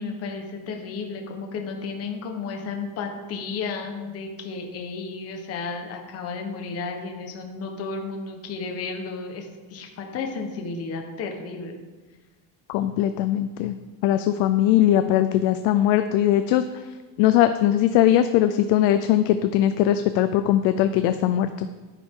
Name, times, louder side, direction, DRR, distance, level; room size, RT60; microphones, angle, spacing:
voice 1, 0.0-11.8, left 4 dB, 35° left, 3 dB, 1.2 m, -33 dB
voice 2, 12.7-13.8 14.0-16.7 17.2-21.7, left 12 dB, 90° left, 9 dB, 0.7 m, -20 dB
10.0 x 10.0 x 3.8 m, 1.3 s
cardioid pair, 175°, 40 cm